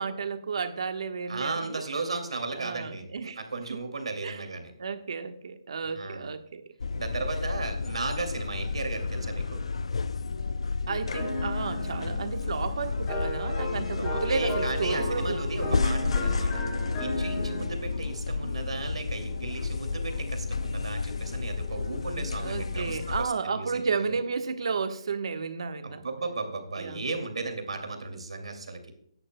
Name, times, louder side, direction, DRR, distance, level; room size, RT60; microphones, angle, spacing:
voice 1, 0.0-1.8 2.5-3.4 3.7-3.8 4.2-4.4 4.8-6.6 10.9-15.8 22.4-26.0 26.8-27.2, right 5 dB, 60° right, 7 dB, 1.2 m, -32 dB
voice 2, 1.3-3.1 3.4-4.7 5.8-6.3 6.9-9.6 14.0-16.6 17.0-24.1 25.8-28.9, right 3 dB, 80° right, 5 dB, 2.5 m, -35 dB
sound 1, 6.8-23.3, left 4 dB, 75° left, 0.5 m, -31 dB
sound 2, 11.1-17.6, left 1 dB, 20° left, 3.6 m, -35 dB
16.5 x 10.5 x 2.2 m, 0.67 s
hypercardioid pair, 165°, 3 cm